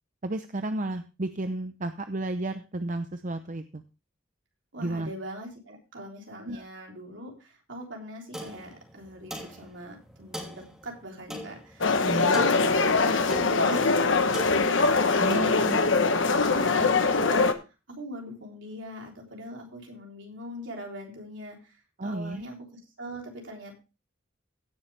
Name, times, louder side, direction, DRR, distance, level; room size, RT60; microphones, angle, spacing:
voice 1, 0.2-3.8 4.8-5.1 6.4-6.6 12.0-12.4 15.2-15.8 22.0-22.4, right 2 dB, 40° right, 8 dB, 0.7 m, -32 dB
voice 2, 4.7-11.9 12.2-15.9 16.3-23.8, equal, 65° right, 1 dB, 3.6 m, -42 dB
sound 1, 8.3-16.1, equal, 5° right, 2.9 m, -43 dB
sound 2, 11.8-17.5, left 4 dB, 70° left, 1.1 m, -22 dB
16.5 x 7.1 x 3.4 m, 0.29 s
head